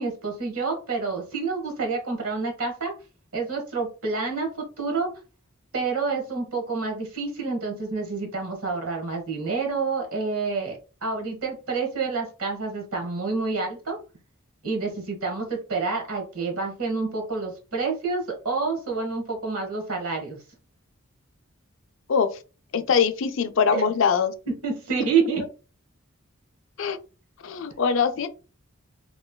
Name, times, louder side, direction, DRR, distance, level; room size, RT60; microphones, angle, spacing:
voice 1, 0.0-2.9 3.3-5.1 5.7-14.0 14.6-20.4 23.7-23.8 24.6-25.5, right 4 dB, 90° right, 1.2 m, -28 dB
voice 2, 22.7-24.3 26.8-27.0 27.4-28.3, left 6 dB, 65° left, 0.4 m, -22 dB
3.1 x 2.9 x 2.2 m
head